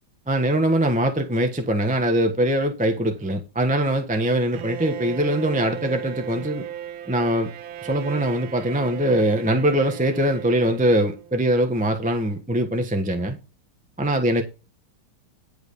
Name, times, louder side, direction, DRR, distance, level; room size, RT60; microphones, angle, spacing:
voice 1, 0.3-6.6 7.0-7.5 7.8-13.4 14.0-14.4, right 1 dB, 5° right, 0.9 m, -22 dB
Bowed string instrument, 4.5-11.5, right 10 dB, 75° right, 1.6 m, -36 dB
10.5 x 4.9 x 6.7 m
omnidirectional pair, 2.3 m